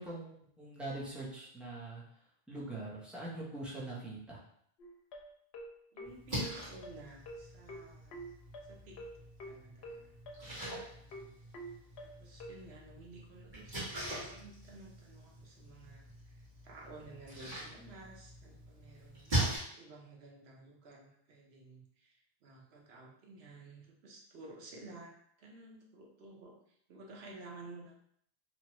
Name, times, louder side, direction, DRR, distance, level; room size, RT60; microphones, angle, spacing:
voice 1, 0.0-2.0 2.5-4.4, right 2 dB, ahead, -6 dB, 0.6 m, -43 dB
sound 1, 4.8-12.5, equal, 75° left, 0.8 m, -47 dB
voice 2, 5.9-8.2 8.6-10.1 11.0-11.4 12.0-19.4 19.7-28.0, right 2 dB, 80° right, -1 dB, 0.9 m, -54 dB
Splash splatter, 6.0-19.6, right 1 dB, 50° right, 1.4 m, -42 dB
2.9 x 2.2 x 2.9 m, 0.67 s
omnidirectional pair, 1.1 m